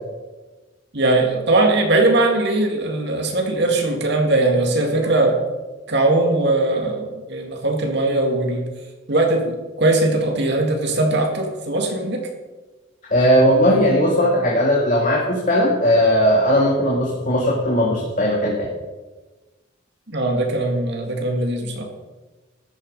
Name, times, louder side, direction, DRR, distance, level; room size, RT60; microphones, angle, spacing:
voice 1, 0.9-5.4 5.9-8.7 9.1-12.3 20.1-21.8, right 2 dB, 60° right, 2 dB, 2.1 m, -20 dB
voice 2, 13.1-18.7, equal, 40° left, -2 dB, 2.0 m, -17 dB
13.5 x 10.5 x 5.3 m, 1.2 s
head